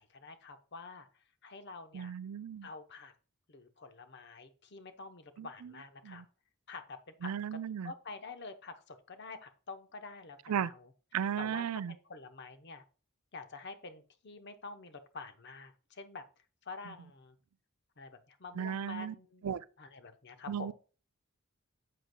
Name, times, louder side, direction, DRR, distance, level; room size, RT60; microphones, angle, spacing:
voice 1, 0.0-2.1 2.6-3.1 3.5-6.2 6.7-10.9 11.4-12.8 13.3-16.2 16.6-17.4 18.0-19.4 19.8-20.7, left 4 dB, 50° left, 0.8 m, -48 dB
voice 2, 1.9-2.7 5.4-5.5 6.0-6.2 7.2-7.9 10.5-10.7 11.1-11.9 18.6-19.1 19.4-19.6 20.5-20.7, right 8 dB, 85° right, 0.4 m, -35 dB
7.9 x 7.7 x 2.2 m
head